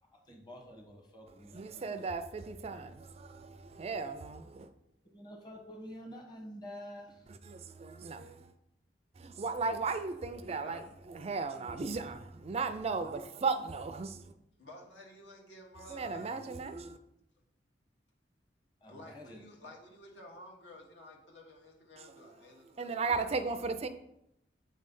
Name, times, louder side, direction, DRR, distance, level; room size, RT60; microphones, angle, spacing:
voice 1, 0.3-2.0 5.1-7.3 18.8-19.7, equal, 25° left, 1.1 m, -48 dB
voice 2, 1.5-4.7 7.5-8.4 9.2-14.1 15.9-17.0 22.8-23.9, right 4 dB, 35° right, 0.4 m, -36 dB
voice 3, 10.5-10.9 14.6-16.4 18.9-23.5, left 1 dB, 75° left, 1.5 m, -53 dB
7.8 x 3.2 x 5.3 m
head